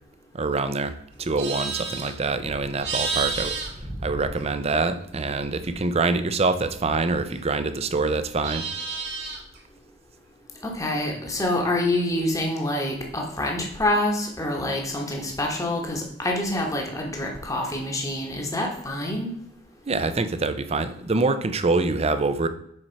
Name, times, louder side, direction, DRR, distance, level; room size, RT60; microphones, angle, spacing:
voice 1, 0.3-3.6 4.0-8.7 19.9-22.5, right 3 dB, 35° right, 11 dB, 0.5 m, -25 dB
Livestock farm animals working animals, 1.1-4.8 5.1-7.7 8.0-9.6, right 4 dB, 60° right, 1.7 m, -33 dB
voice 2, 10.6-19.3, left 1 dB, 15° left, 1 dB, 1.2 m, -26 dB
6.5 x 4.4 x 4.5 m, 0.72 s
head